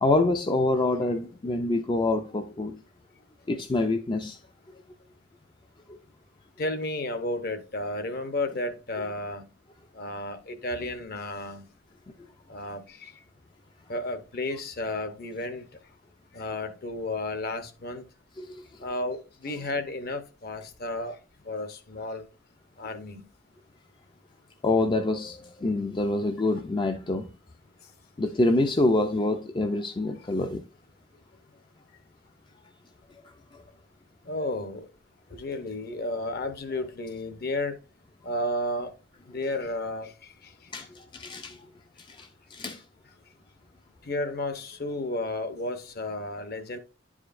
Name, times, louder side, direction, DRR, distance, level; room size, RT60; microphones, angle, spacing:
voice 1, 0.0-2.8 3.5-4.4 18.4-18.6 24.6-27.3 28.2-30.6 40.7-41.6 42.1-42.8, left 2 dB, 25° left, 0.4 m, -26 dB
voice 2, 6.6-9.5 9.9-11.6 12.5-13.1 13.9-15.7 16.3-18.0 18.8-21.2 21.4-22.2 22.8-23.2 34.3-34.9 35.3-37.8 38.2-38.9 39.3-40.5 44.0-46.8, left 2 dB, 55° left, 0.9 m, -32 dB
10.5 x 4.9 x 2.5 m
head